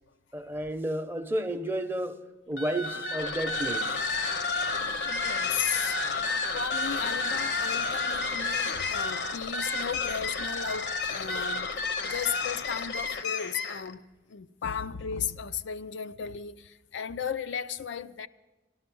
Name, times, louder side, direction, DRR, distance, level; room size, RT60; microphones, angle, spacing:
voice 1, 0.3-2.2 2.5-4.0, right 1 dB, 10° right, 0.7 m, -32 dB
sound 1, 2.5-13.9, left 3 dB, 65° left, 0.8 m, -31 dB
voice 2, 5.0-6.0 6.5-11.8 12.0-14.0 14.3-18.3, left 7 dB, 80° left, 0.5 m, -35 dB
12.5 x 12.5 x 6.1 m
head